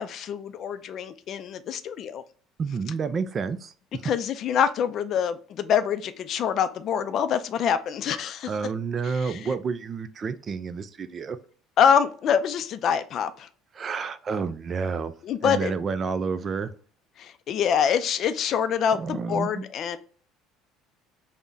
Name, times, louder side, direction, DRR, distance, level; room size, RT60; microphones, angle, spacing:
voice 1, 0.0-2.2 4.0-8.5 9.2-9.4 11.8-13.5 15.2-15.7 17.2-20.0, left 8 dB, 50° left, 11 dB, 0.4 m, -25 dB
voice 2, 2.6-4.0 8.5-11.4 13.7-15.1 15.4-16.7 19.0-19.6, right 5 dB, 35° right, 12 dB, 0.3 m, -30 dB
3.4 x 2.1 x 3.8 m, 0.43 s
supercardioid pair, 100°, 0 cm